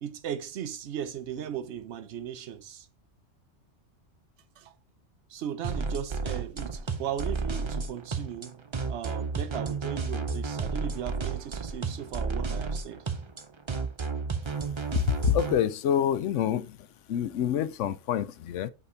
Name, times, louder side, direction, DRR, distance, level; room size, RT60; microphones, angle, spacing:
voice 1, 0.0-2.9 4.6-4.7 5.3-13.0, right 9 dB, 70° right, 1.0 m, -37 dB
sound 1, 5.6-15.5, right 4 dB, 30° right, 0.5 m, -32 dB
voice 2, 14.9-16.8 17.1-18.7, left 10 dB, 85° left, 0.9 m, -27 dB
5.6 x 5.2 x 3.9 m
omnidirectional pair, 1.2 m